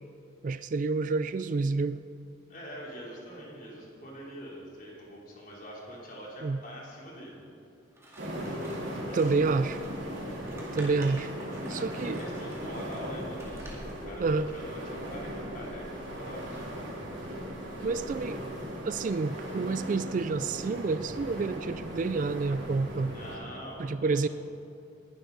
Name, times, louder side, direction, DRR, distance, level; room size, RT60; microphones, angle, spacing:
voice 1, 0.4-2.0 6.4-6.6 9.1-9.8 10.7-11.3 11.7-12.2 14.2-14.5 17.8-18.5 18.8-23.1 23.8-24.3, right 3 dB, 40° right, 13 dB, 0.3 m, -29 dB
voice 2, 2.5-7.4 8.8-9.5 11.7-16.9 23.1-24.3, equal, 45° left, -4 dB, 3.3 m, -44 dB
Scissors, 7.9-14.0, right 1 dB, 15° right, 2.1 m, -50 dB
sound 1, 8.2-23.4, equal, 70° right, 3.3 m, -38 dB
20.5 x 11.5 x 4.0 m, 2.5 s
head